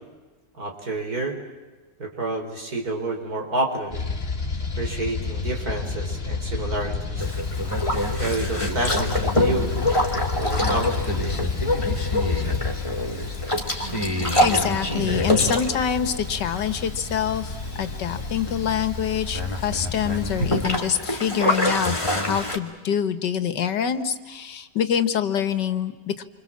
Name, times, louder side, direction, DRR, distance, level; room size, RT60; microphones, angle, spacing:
voice 1, 0.6-1.4 2.0-4.0 4.8-7.3 8.1-9.7 10.4-11.4, right 2 dB, 60° right, 3 dB, 4.6 m, -29 dB
sound 1, 3.9-20.8, left 4 dB, 35° left, 2.8 m, -30 dB
Boat Water vehicle, 7.2-22.6, left 1 dB, 15° left, 2.7 m, -26 dB
voice 2, 14.4-26.2, left 8 dB, 85° left, 11 dB, 2.0 m, -25 dB
27.5 x 25.5 x 7.4 m, 1.2 s
omnidirectional pair, 1.8 m